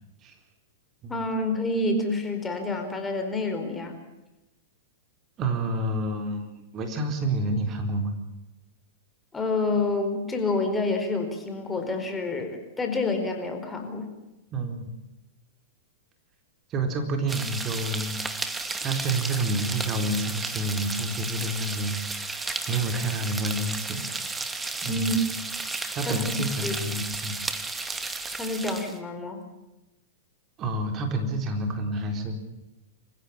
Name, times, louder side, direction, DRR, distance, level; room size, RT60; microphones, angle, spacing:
voice 1, 1.1-4.0 9.3-14.1 24.9-25.2 26.1-26.3 26.6-26.7 28.4-29.4, left 2 dB, 15° left, 5 dB, 4.6 m, -28 dB
voice 2, 5.4-8.2 14.5-14.9 16.7-18.2 18.8-24.0 24.8-25.1 25.9-27.4 30.6-32.3, right 1 dB, 30° right, 5 dB, 4.3 m, -29 dB
sound 1, 17.3-29.0, right 3 dB, 10° right, 2.2 m, -33 dB
27.0 x 16.0 x 8.8 m, 0.97 s
hypercardioid pair, 125°, 0 cm